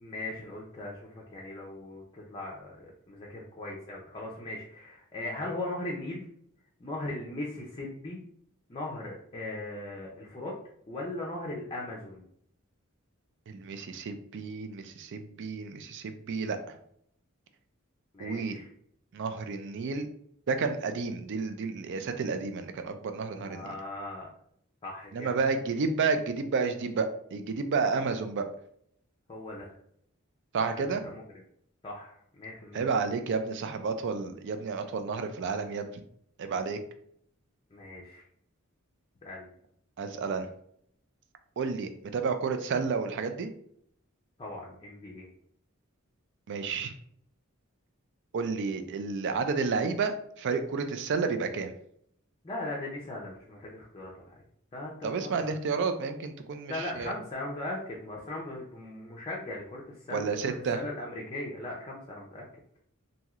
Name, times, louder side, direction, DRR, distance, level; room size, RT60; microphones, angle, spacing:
voice 1, 0.0-6.3 6.8-8.2 8.7-10.5 10.9-12.3 18.1-18.7 23.4-24.3 24.8-25.3 29.3-29.7 30.7-31.2 31.8-32.8 37.7-38.2 39.2-39.5 44.4-45.3 52.4-54.4 54.7-55.5 56.7-62.4, left 2 dB, 25° left, -3 dB, 0.5 m, -39 dB
voice 2, 13.5-16.6 18.2-18.6 19.1-20.1 20.5-23.7 25.1-28.5 30.5-31.0 32.7-35.9 36.4-36.8 40.0-40.5 41.6-43.5 46.5-46.9 48.3-51.7 55.0-57.1 60.1-60.8, right 4 dB, 60° right, 8 dB, 0.4 m, -31 dB
3.0 x 2.7 x 2.4 m, 0.68 s
head